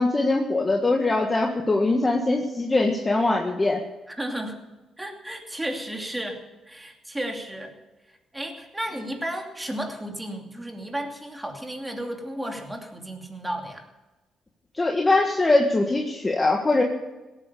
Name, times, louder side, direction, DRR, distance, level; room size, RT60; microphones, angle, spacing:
voice 1, 0.0-3.8 14.7-16.8, left 2 dB, 20° left, 2 dB, 1.6 m, -22 dB
voice 2, 4.1-4.6 5.0-7.7 8.1-13.8, right 1 dB, 10° right, 3 dB, 2.7 m, -33 dB
17.0 x 9.1 x 6.9 m, 1.1 s
cardioid pair, 90°, 0 cm